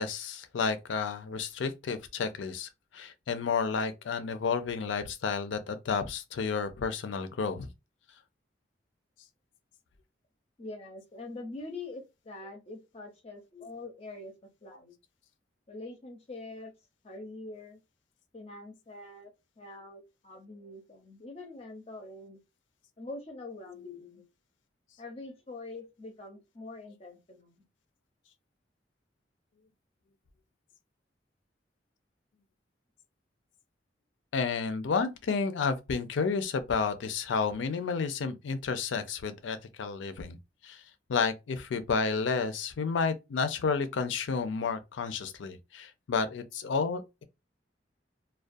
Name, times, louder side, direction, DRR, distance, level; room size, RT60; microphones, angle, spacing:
voice 1, 0.0-7.7 34.3-40.4 40.6-40.8 41.1-47.2, left 5 dB, 85° left, 0.4 m, -31 dB
voice 2, 10.6-14.3 14.6-14.9 15.7-16.7 17.0-17.8 18.3-19.3 19.6-22.4 23.0-24.3 25.0-27.6, left 2 dB, 35° left, 0.5 m, -44 dB
2.3 x 2.2 x 2.5 m
head